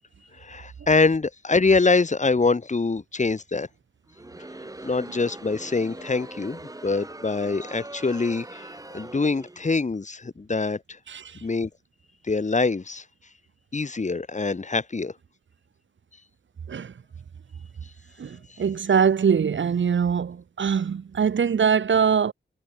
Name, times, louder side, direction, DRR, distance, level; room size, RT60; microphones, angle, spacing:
voice 1, 0.4-3.7 4.8-10.8 11.4-11.7 12.3-13.0 13.7-15.1, left 3 dB, 35° left, 1.4 m, -24 dB
Crowd, 4.1-9.8, right 2 dB, 15° right, 1.5 m, -42 dB
voice 2, 11.1-11.4 16.7-16.9 18.2-22.3, right 7 dB, 75° right, 0.9 m, -23 dB
wide cardioid pair, 100°, 20 cm